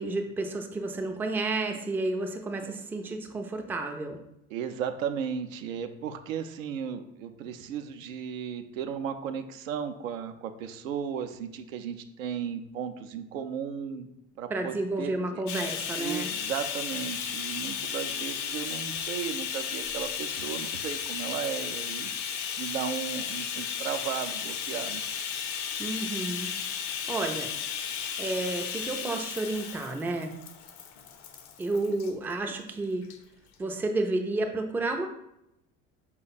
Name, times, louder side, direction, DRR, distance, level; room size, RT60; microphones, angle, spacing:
voice 1, 0.0-4.2 14.5-16.3 25.8-26.5 27.1-27.5 28.2-30.3 31.6-33.1 33.6-35.1, right 2 dB, 5° right, 3 dB, 0.4 m, -31 dB
voice 2, 4.5-14.1 14.4-15.4 16.0-22.1 22.6-25.0, right 8 dB, 75° right, 7 dB, 0.5 m, -35 dB
Bathtub (filling or washing), 15.5-32.1 33.0-33.2 33.5-33.6, left 8 dB, 45° left, 0.6 m, -34 dB
5.1 x 2.2 x 4.0 m, 0.81 s
figure-of-eight pair, 60°, 40 cm